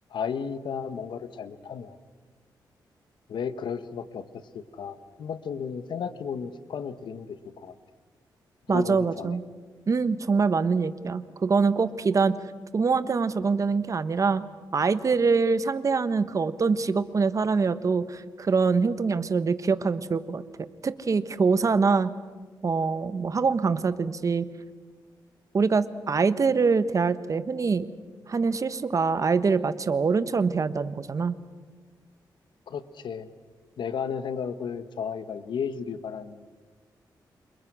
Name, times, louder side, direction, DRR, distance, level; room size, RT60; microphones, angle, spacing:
voice 1, 0.1-2.0 3.3-4.2 4.5-7.7 8.7-9.4 32.7-33.3 33.8-36.6, left 6 dB, 75° left, 12 dB, 1.5 m, -34 dB
voice 2, 8.7-9.4 9.9-12.3 12.7-14.4 14.7-20.4 20.8-22.1 22.6-24.5 25.5-27.9 28.3-31.3, right 4 dB, 45° right, 13 dB, 1.4 m, -24 dB
29.0 x 27.5 x 6.3 m, 1.4 s
cardioid pair, 90°, 8 cm